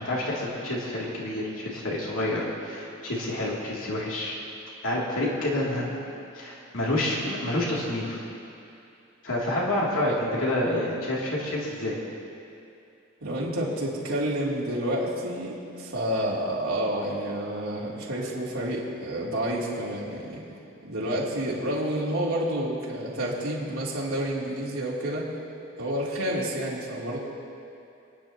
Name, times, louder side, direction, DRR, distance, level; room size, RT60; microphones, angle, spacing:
voice 1, 0.0-4.4 4.8-6.0 6.3-8.2 9.2-10.1 10.4-12.0, left 1 dB, 75° left, -5 dB, 3.0 m, -28 dB
voice 2, 13.2-20.4 20.8-25.2 25.8-27.2, right 1 dB, 85° right, -6 dB, 3.4 m, -29 dB
28.0 x 10.0 x 3.0 m, 2.7 s
head